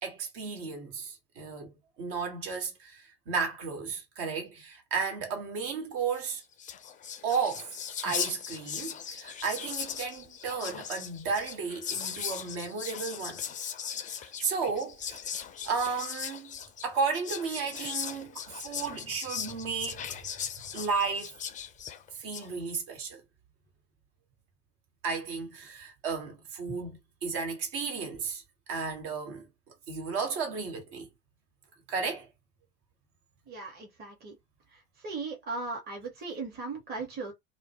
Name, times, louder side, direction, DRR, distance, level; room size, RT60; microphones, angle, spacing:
voice 1, 0.0-6.4 7.2-7.7 8.0-13.4 14.2-15.2 15.6-16.6 16.8-20.0 20.7-21.3 22.2-23.2 25.0-28.4 28.7-29.5 29.9-31.1 31.9-32.3, right 5 dB, 60° right, 1.3 m, -33 dB
Whispering, 6.3-6.4 6.5-22.5, left 8 dB, 25° left, 0.5 m, -38 dB
voice 2, 33.5-34.4 35.0-37.3, right 3 dB, 30° right, 1.1 m, -37 dB
2.4 x 2.1 x 2.9 m
figure-of-eight pair, 70°, 33 cm